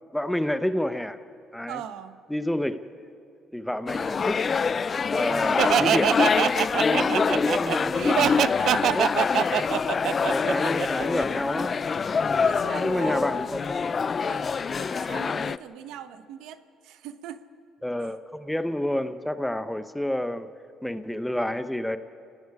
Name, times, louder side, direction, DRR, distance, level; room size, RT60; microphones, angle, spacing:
voice 1, 0.1-1.2 1.5-1.8 2.3-2.8 3.5-4.4 5.1-6.2 6.8-8.1 8.8-9.2 10.3-11.8 12.7-13.9 17.8-20.5 20.8-22.0, left 1 dB, 5° left, 11 dB, 1.0 m, -29 dB
voice 2, 1.7-2.2 7.0-7.2 8.0-9.0 9.9-10.0 12.3-13.2 14.2-14.5 14.8-17.4 18.0-18.1, right 9 dB, 90° right, 10 dB, 1.0 m, -40 dB
sound 1, 3.9-15.6, left 5 dB, 40° left, 0.5 m, -25 dB
Laughter, 5.6-11.2, right 10 dB, 65° right, 0.4 m, -24 dB
sound 2, 7.9-10.1 10.5-14.4, left 5 dB, 75° left, 4.9 m, -47 dB
29.5 x 19.0 x 4.9 m, 2.6 s
cardioid pair, 95°, 0 cm